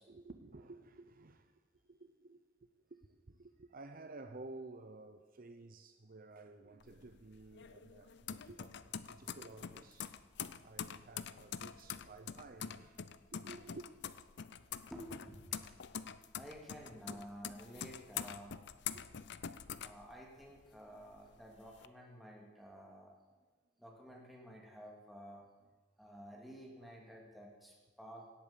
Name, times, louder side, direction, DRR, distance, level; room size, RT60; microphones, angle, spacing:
voice 1, 0.1-2.4 2.7-10.1 10.6-13.9 17.1-17.3 18.9-19.3 26.8-26.9, right 2 dB, 50° right, 8 dB, 0.8 m, -54 dB
sound 1, 6.8-20.6 21.0-21.9, left 8 dB, 65° left, 0.6 m, -45 dB
voice 2, 14.9-15.8 16.3-18.7 19.7-23.2 23.8-25.5 26.0-28.3, equal, ahead, -1 dB, 2.8 m, -52 dB
17.5 x 8.7 x 7.5 m, 1.3 s
head